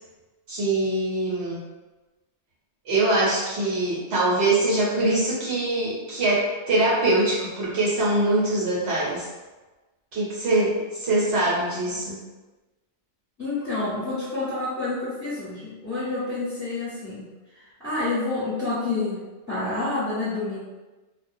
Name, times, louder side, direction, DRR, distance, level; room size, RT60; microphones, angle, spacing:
voice 1, 0.5-1.6 2.8-9.3 10.1-12.2, right 2 dB, 65° right, -7 dB, 1.0 m, -23 dB
voice 2, 13.4-19.2 19.5-20.6, left 2 dB, 15° left, -12 dB, 1.0 m, -28 dB
2.2 x 2.1 x 2.6 m, 1.2 s
omnidirectional pair, 1.2 m